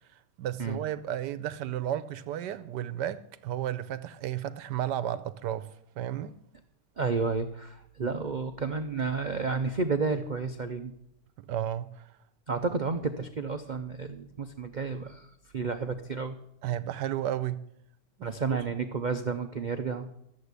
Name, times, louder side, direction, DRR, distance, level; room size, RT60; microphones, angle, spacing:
voice 1, 0.4-5.7 6.0-6.3 11.5-12.1 16.6-17.7 18.2-18.6, right 11 dB, 80° right, 1.3 m, -33 dB
voice 2, 7.0-10.9 12.5-16.4 18.2-20.1, right 4 dB, 60° right, 0.4 m, -31 dB
13.0 x 7.6 x 8.1 m
omnidirectional pair, 1.8 m